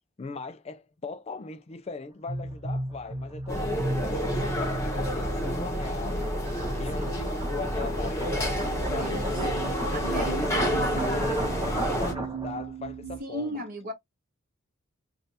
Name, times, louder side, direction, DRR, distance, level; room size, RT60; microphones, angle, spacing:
voice 1, 0.2-6.2 6.7-13.6, left 4 dB, 30° left, 0.4 m, -39 dB
sound 1, 2.3-13.2, right 2 dB, 65° right, 0.7 m, -37 dB
sound 2, 2.7-12.6, equal, 20° right, 1.2 m, -38 dB
sound 3, 3.5-12.1, equal, 15° left, 1.2 m, -29 dB
voice 2, 7.0-7.3 9.0-9.6 9.9-10.3 13.2-13.9, equal, 45° right, 1.5 m, -36 dB
3.2 x 2.7 x 4.0 m
head